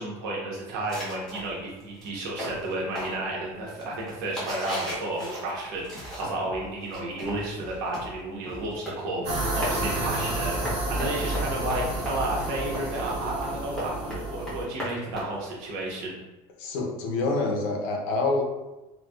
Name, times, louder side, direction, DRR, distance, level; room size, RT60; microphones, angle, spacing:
voice 1, 0.0-16.2, right 2 dB, 85° right, -3 dB, 1.0 m, -32 dB
sound 1, 0.9-6.5 6.8-15.9, equal, 5° left, 0.8 m, -38 dB
sound 2, 5.7-12.8 13.1-13.6, right 2 dB, 30° right, 0.8 m, -46 dB
sound 3, 9.2-14.6, right 1 dB, 60° right, 0.8 m, -30 dB
voice 2, 16.6-18.4, left 3 dB, 70° left, 1 dB, 0.7 m, -26 dB
4.1 x 2.2 x 2.3 m, 1.1 s
cardioid pair, 180°, 12 cm